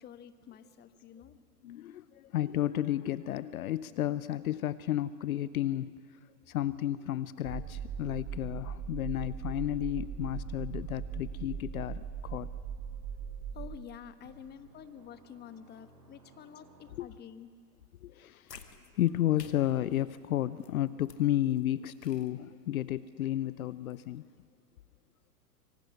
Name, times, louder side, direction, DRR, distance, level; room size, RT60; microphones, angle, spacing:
voice 1, 0.0-1.4 13.5-17.5, left 9 dB, 20° left, 1.2 m, -49 dB
voice 2, 1.6-6.2 6.5-12.5 16.9-17.1 18.0-18.7 18.9-24.3, left 13 dB, 60° left, 0.8 m, -32 dB
sound 1, 7.4-13.8, right 7 dB, 10° right, 0.6 m, -39 dB
sound 2, 14.2-17.5, right 2 dB, 70° right, 6.7 m, -60 dB
sound 3, 18.4-24.4, left 6 dB, 80° left, 2.1 m, -56 dB
25.5 x 23.5 x 9.9 m
figure-of-eight pair, 105°, 48 cm